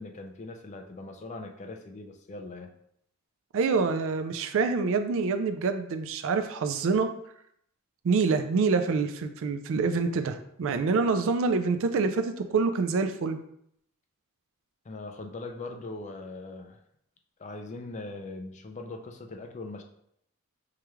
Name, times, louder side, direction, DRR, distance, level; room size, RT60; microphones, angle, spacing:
voice 1, 0.0-2.7 14.8-16.8 17.4-19.8, left 2 dB, 30° left, 4 dB, 0.4 m, -40 dB
voice 2, 3.5-7.1 8.0-13.4, right 4 dB, 60° right, 9 dB, 0.4 m, -26 dB
4.7 x 2.3 x 3.0 m, 0.73 s
head